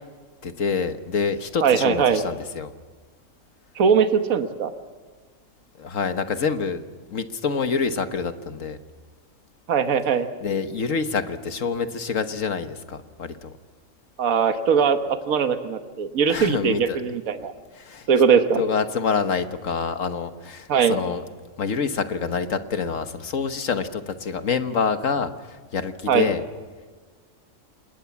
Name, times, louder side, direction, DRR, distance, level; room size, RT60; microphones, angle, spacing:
voice 1, 0.4-2.7 5.8-6.8 7.1-8.8 10.4-13.5 16.3-17.0 17.7-18.1 18.6-21.2 21.6-26.4, left 5 dB, 65° left, 9 dB, 1.6 m, -27 dB
voice 2, 1.6-2.2 3.8-4.7 9.7-10.3 14.2-15.0 15.3-17.5 18.1-18.6 20.7-21.0 26.1-26.3, right 6 dB, 75° right, 8 dB, 1.6 m, -20 dB
28.0 x 20.0 x 7.2 m, 1.4 s
omnidirectional pair, 1.5 m